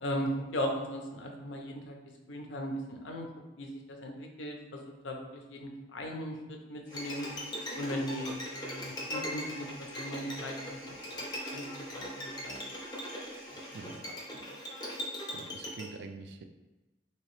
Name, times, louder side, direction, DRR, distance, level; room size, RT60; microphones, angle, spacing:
voice 1, 0.0-2.0 2.3-3.3 3.6-7.3 7.8-11.0 11.5-12.6 13.5-13.6 14.0-14.1, equal, 85° left, 2 dB, 0.5 m, -38 dB
sound 1, 6.8-14.6, equal, 25° right, 1.2 m, -52 dB
Bowed string instrument, 6.9-15.9, equal, 20° left, 0.5 m, -40 dB
voice 2, 15.3-16.4, right 4 dB, 65° right, 6 dB, 0.3 m, -45 dB
2.9 x 2.8 x 3.0 m, 1.1 s
head